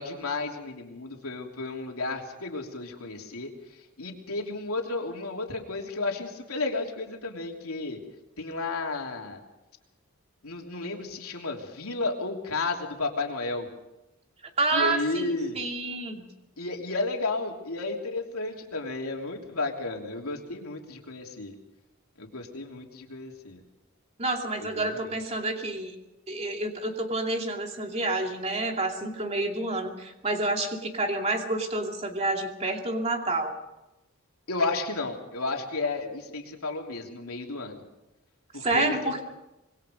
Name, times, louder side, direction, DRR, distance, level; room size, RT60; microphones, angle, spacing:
voice 1, 0.0-3.5 4.0-8.0 8.4-9.4 10.4-13.7 14.7-15.6 16.6-21.5 22.2-23.6 24.7-25.1 34.5-37.8 38.5-38.9, left 3 dB, 85° left, 1 dB, 3.2 m, -32 dB
voice 2, 14.6-16.3 24.2-25.9 26.3-33.5 38.6-39.2, right 2 dB, 30° right, 2 dB, 2.5 m, -29 dB
25.5 x 21.5 x 5.2 m, 0.97 s
head